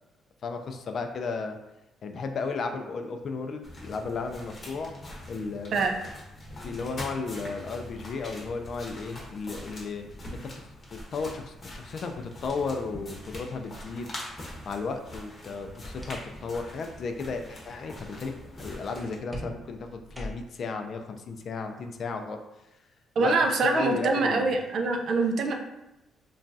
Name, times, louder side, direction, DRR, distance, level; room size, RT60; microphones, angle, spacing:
voice 1, 0.4-1.6 2.0-5.7 6.6-14.1 14.7-22.4 23.2-23.4 23.6-24.5, left 4 dB, 55° left, 5 dB, 0.3 m, -34 dB
sound 1, 3.6-19.2, left 1 dB, 40° left, 0.8 m, -43 dB
sound 2, 15.5-16.6 16.9-17.2 19.3-20.7, equal, 5° right, 0.6 m, -42 dB
voice 2, 23.2-25.5, right 3 dB, 65° right, 3 dB, 0.4 m, -24 dB
3.0 x 2.2 x 2.6 m, 0.92 s
cardioid pair, 90°, 0 cm